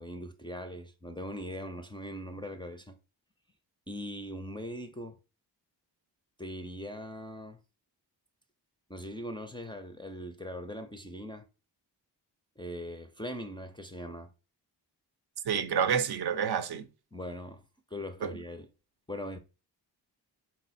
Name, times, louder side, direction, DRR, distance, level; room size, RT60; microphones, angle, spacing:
voice 1, 0.0-3.0 3.9-5.2 6.4-7.6 8.9-11.5 12.6-14.3 17.1-17.6 17.9-18.7 19.1-19.4, equal, 10° left, 0.4 m, -40 dB
voice 2, 15.5-16.9 18.2-18.4, right 7 dB, 60° right, 0.6 m, -29 dB
4.2 x 2.1 x 4.0 m
cardioid pair, 80°, 43 cm